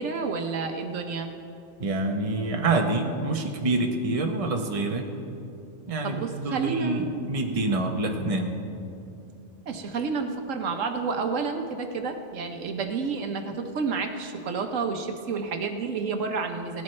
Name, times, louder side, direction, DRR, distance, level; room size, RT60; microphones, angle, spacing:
voice 1, 0.0-1.3 6.0-7.3 9.7-16.8, right 4 dB, 75° right, 5 dB, 1.2 m, -30 dB
voice 2, 1.8-5.1 5.9-8.5, right 2 dB, 30° right, 2 dB, 0.9 m, -27 dB
18.5 x 13.0 x 3.2 m, 2.7 s
omnidirectional pair, 1.3 m